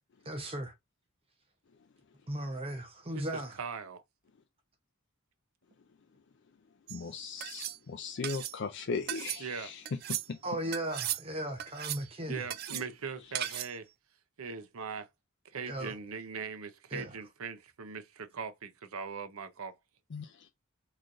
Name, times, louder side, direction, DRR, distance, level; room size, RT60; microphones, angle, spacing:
voice 1, 0.2-0.7 2.3-3.6 7.0-7.2 10.4-12.4 15.7-15.9 16.9-17.2, right 1 dB, 25° right, 0.8 m, -37 dB
voice 2, 3.6-4.0 9.4-9.7 12.3-13.9 14.4-15.1 15.5-19.7, right 5 dB, 80° right, 0.7 m, -40 dB
voice 3, 6.9-9.8 10.1-10.4 20.1-20.3, left 4 dB, 55° left, 0.4 m, -38 dB
sound 1, 6.9-7.0 7.4-7.8 8.2-8.6 9.1-9.4 9.8-10.3 10.7-11.2 11.6-12.1 12.5-12.8 13.3-13.7, right 13 dB, 45° right, 0.3 m, -36 dB
3.9 x 3.1 x 2.5 m
head